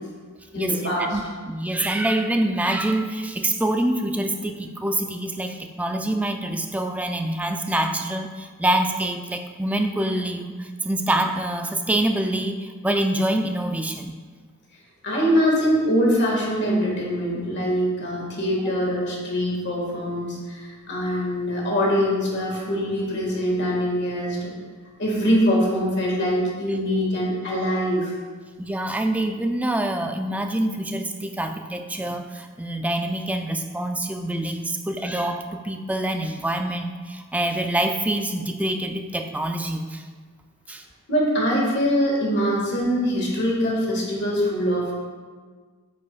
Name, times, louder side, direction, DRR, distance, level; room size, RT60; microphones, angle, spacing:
voice 1, 0.5-1.2 15.0-24.5 25.0-28.1 41.1-44.9, equal, 55° left, -3 dB, 1.8 m, -23 dB
voice 2, 1.1-14.2 28.6-40.0 40.7-40.8, right 1 dB, 5° right, 5 dB, 0.3 m, -26 dB
8.1 x 6.8 x 2.4 m, 1.5 s
head